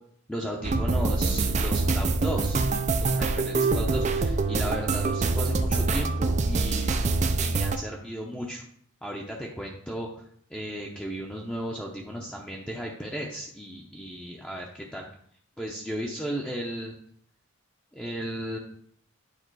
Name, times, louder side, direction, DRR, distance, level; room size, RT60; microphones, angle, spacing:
voice 1, 0.3-2.6 3.0-6.9 7.4-8.6 9.0-10.2 10.5-15.1 15.6-16.9 17.9-18.6, equal, 5° left, -2 dB, 0.7 m, -35 dB
sound 1, 0.6-7.8, right 3 dB, 35° right, 0.4 m, -25 dB
9.1 x 3.5 x 4.7 m, 0.62 s
head